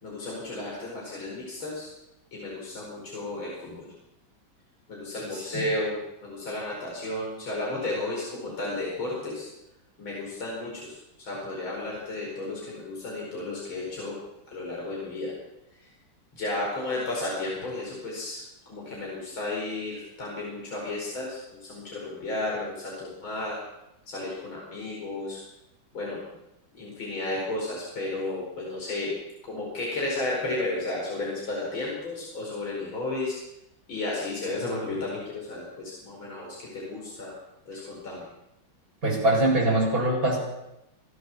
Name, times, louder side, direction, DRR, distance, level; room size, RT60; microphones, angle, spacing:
voice 1, 0.0-1.9 2.3-3.9 4.9-9.5 10.0-14.2 14.5-15.3 15.8-15.9 16.3-18.4 18.7-23.6 24.1-25.4 25.9-26.2 26.7-29.1 29.4-33.4 33.9-37.3 37.7-38.3, left 2 dB, 80° left, -3 dB, 5.8 m, -33 dB
voice 2, 39.0-40.4, right 1 dB, 45° right, -3 dB, 8.6 m, -22 dB
26.5 x 14.5 x 7.3 m, 0.89 s
omnidirectional pair, 2.2 m